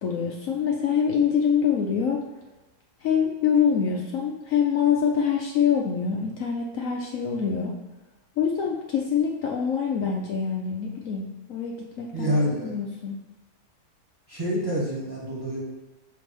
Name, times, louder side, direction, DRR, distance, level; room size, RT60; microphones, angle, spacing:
voice 1, 0.0-2.2 3.0-7.8 8.4-13.2, left 7 dB, 65° left, 0 dB, 1.0 m, -25 dB
voice 2, 12.1-12.7 14.3-15.6, equal, 15° right, -5 dB, 1.4 m, -27 dB
5.7 x 3.3 x 5.2 m, 1.1 s
omnidirectional pair, 1.7 m